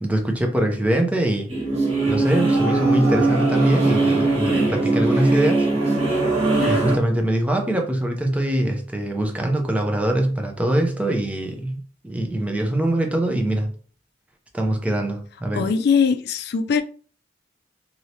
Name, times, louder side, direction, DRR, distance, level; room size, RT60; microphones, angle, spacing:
voice 1, 0.0-1.5 2.1-5.7 6.7-13.7 14.5-15.7, right 1 dB, 5° right, 0.5 m, -23 dB
sound 1, 1.5-7.0, right 2 dB, 35° right, 1.0 m, -20 dB
voice 2, 15.5-16.8, left 6 dB, 60° left, 0.3 m, -21 dB
2.8 x 2.7 x 3.2 m
head